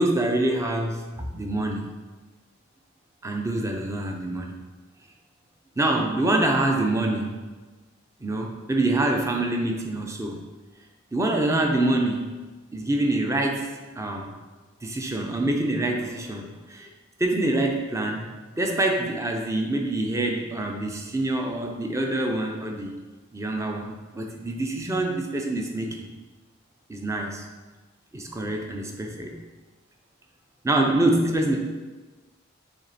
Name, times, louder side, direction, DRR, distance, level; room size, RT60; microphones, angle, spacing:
voice 1, 0.0-1.9 3.2-4.6 5.8-7.4 8.2-10.4 11.1-12.3 12.7-14.3 14.8-16.9 17.2-18.3 18.6-23.0 23.3-26.0 26.9-27.5 28.1-29.4 30.6-31.6, right 1 dB, 15° right, 2 dB, 0.6 m, -25 dB
7.0 x 3.4 x 4.1 m, 1.3 s
head